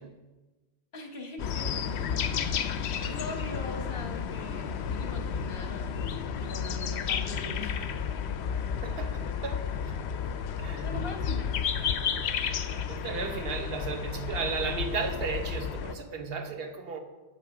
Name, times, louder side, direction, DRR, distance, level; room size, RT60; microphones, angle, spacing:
voice 1, 0.9-1.9 2.6-7.9 10.8-11.6, left 2 dB, 60° left, 3 dB, 1.4 m, -41 dB
sound 1, 1.4-15.9, left 7 dB, 90° left, 0.9 m, -32 dB
voice 2, 8.8-9.9 10.6-10.9 12.9-17.0, right 5 dB, 65° right, 6 dB, 1.0 m, -34 dB
9.0 x 6.5 x 4.8 m, 1.2 s
omnidirectional pair, 1.1 m